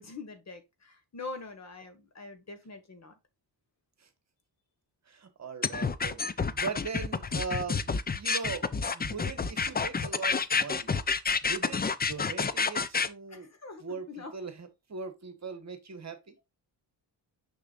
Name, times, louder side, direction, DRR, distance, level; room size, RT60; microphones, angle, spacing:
voice 1, 0.0-3.1 13.3-14.3, left 3 dB, 40° left, 1.6 m, -44 dB
voice 2, 5.1-11.0 11.4-13.5 13.8-16.3, right 5 dB, 40° right, 1.3 m, -40 dB
sound 1, 5.6-13.1, left 5 dB, 25° left, 0.5 m, -29 dB
6.7 x 6.4 x 2.4 m
wide cardioid pair, 130°, 42 cm